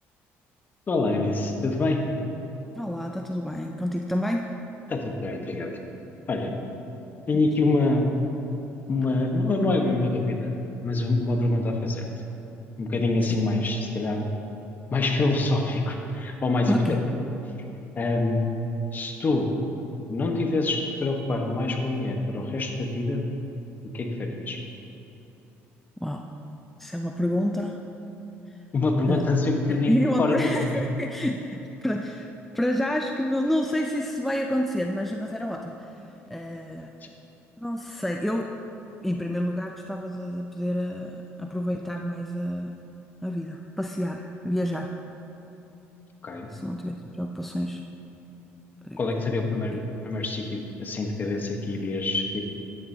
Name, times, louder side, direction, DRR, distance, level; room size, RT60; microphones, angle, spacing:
voice 1, 0.9-2.0 4.9-5.7 6.3-6.5 7.3-8.1 8.9-10.5 10.8-12.1 12.8-14.3 14.9-17.0 18.0-18.4 18.9-19.5 20.1-23.2 23.8-24.6 28.7-30.7 37.0-37.1 46.2-46.5 49.0-52.4, left 2 dB, 35° left, 2 dB, 1.1 m, -25 dB
voice 2, 2.7-4.4 13.3-13.4 16.7-17.0 26.0-26.3 26.8-27.8 29.1-29.3 29.7-32.3 32.5-35.9 36.3-36.9 37.6-38.5 39.0-42.7 43.2-44.9 46.5-47.8 48.8-49.0, equal, 5° left, 2 dB, 0.4 m, -28 dB
10.5 x 9.1 x 2.8 m, 2.9 s
supercardioid pair, 90°, 5 cm